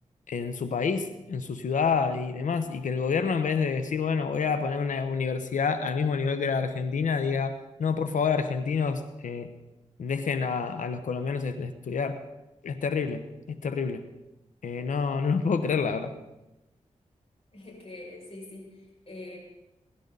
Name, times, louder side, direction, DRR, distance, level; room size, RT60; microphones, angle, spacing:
voice 1, 0.3-7.5 7.8-9.5 10.0-12.2 12.6-13.2 13.5-14.0 14.6-16.1, left 5 dB, 85° left, 10 dB, 1.0 m, -28 dB
voice 2, 17.5-19.4, left 2 dB, 50° left, -2 dB, 6.5 m, -44 dB
22.5 x 12.0 x 4.0 m, 1.0 s
cardioid pair, 60°, 13 cm